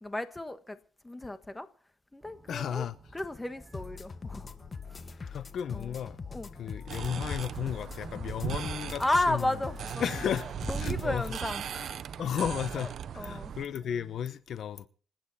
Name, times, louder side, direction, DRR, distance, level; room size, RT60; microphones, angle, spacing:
voice 1, 0.0-0.8 1.0-1.7 2.1-2.9 3.1-4.5 4.9-5.1 5.7-6.0 6.3-6.5 9.0-10.1 10.7-12.0 12.7-12.9 13.1-13.5, left 1 dB, 15° left, 1.5 m, -33 dB
sound 1, 2.2-14.3, right 2 dB, 20° right, 1.3 m, -57 dB
voice 2, 2.5-2.9 5.3-6.2 6.6-9.5 10.0-10.5 10.8-11.2 12.2-14.9, left 9 dB, 65° left, 0.9 m, -34 dB
sound 2, 3.7-11.5, left 5 dB, 35° left, 1.5 m, -43 dB
sound 3, 6.9-13.7, right 9 dB, 65° right, 0.7 m, -38 dB
27.5 x 9.2 x 4.3 m
cardioid pair, 90°, 0 cm